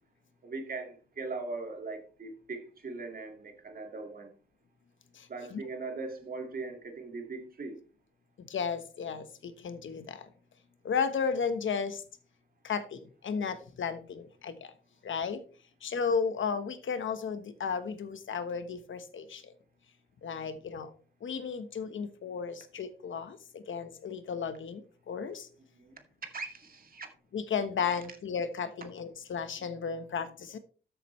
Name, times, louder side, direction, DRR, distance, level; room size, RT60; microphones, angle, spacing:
voice 1, 0.4-4.3 5.3-7.8 25.7-25.9 26.2-27.1 27.9-28.0, right 3 dB, 45° right, 2.2 m, -40 dB
voice 2, 5.1-5.6 8.4-10.3 10.8-12.0 12.6-14.7 15.0-15.4 15.8-19.5 20.2-20.9 21.2-25.5 27.3-30.6, left 6 dB, 75° left, 1.2 m, -34 dB
13.5 x 7.6 x 3.2 m
wide cardioid pair, 150°, 20 cm